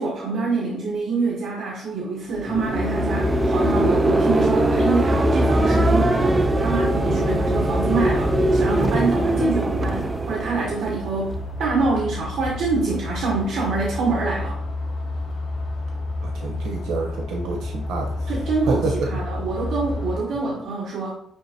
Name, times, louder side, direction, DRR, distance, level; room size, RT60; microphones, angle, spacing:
voice 1, 0.0-14.6 18.3-21.1, right 4 dB, 60° right, -3 dB, 1.2 m, -26 dB
sound 1, 2.3-11.4, right 1 dB, 15° right, 0.3 m, -21 dB
sound 2, 2.5-20.2, left 2 dB, 50° left, 2.2 m, -30 dB
voice 2, 16.2-18.3 18.7-19.1, right 4 dB, 80° right, 1 dB, 1.0 m, -28 dB
9.8 x 3.4 x 2.8 m, 0.79 s
cardioid pair, 160°, 0 cm